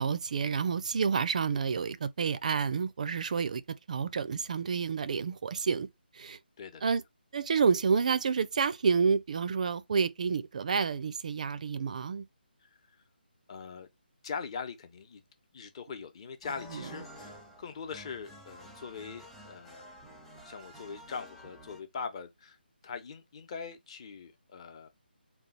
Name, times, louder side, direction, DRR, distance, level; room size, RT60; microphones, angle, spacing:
voice 1, 0.0-5.9 6.1-6.4 6.8-7.0 7.3-12.2 16.7-16.9, right 5 dB, 45° right, 0.4 m, -29 dB
voice 2, 13.5-13.9 14.2-15.2 15.5-19.9 20.4-22.6 22.8-24.9, left 5 dB, 35° left, 0.9 m, -42 dB
sound 1, 16.4-21.8, equal, ahead, 0.7 m, -50 dB
3.8 x 2.3 x 4.0 m
figure-of-eight pair, 150°, 6 cm